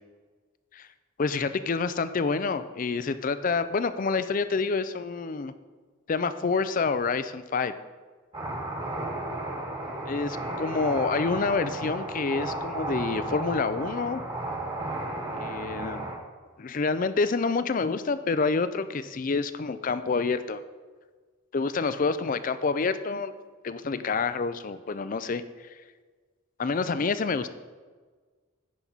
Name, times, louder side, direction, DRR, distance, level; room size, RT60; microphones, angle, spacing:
voice 1, 1.2-5.5 6.1-7.7 10.1-14.2 15.3-16.1 16.6-20.6 21.5-23.3 23.6-25.8 26.6-27.5, left 4 dB, 40° left, 12 dB, 0.4 m, -28 dB
sound 1, 8.3-16.2, right 1 dB, 25° right, 1.6 m, -33 dB
16.0 x 5.9 x 4.0 m, 1.5 s
head